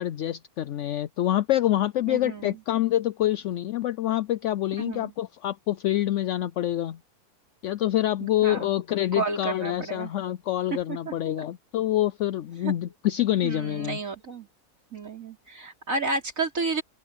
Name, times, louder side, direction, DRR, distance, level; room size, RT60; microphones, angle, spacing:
voice 1, 0.0-7.0 7.6-14.0, left 13 dB, 70° left, 0.7 m, -26 dB
voice 2, 2.1-2.6 4.8-5.1 8.2-8.7 9.1-10.1 10.9-11.1 12.6-12.7 13.4-14.5 14.9-16.8, right 3 dB, 50° right, 4.4 m, -31 dB
open air
omnidirectional pair, 1.7 m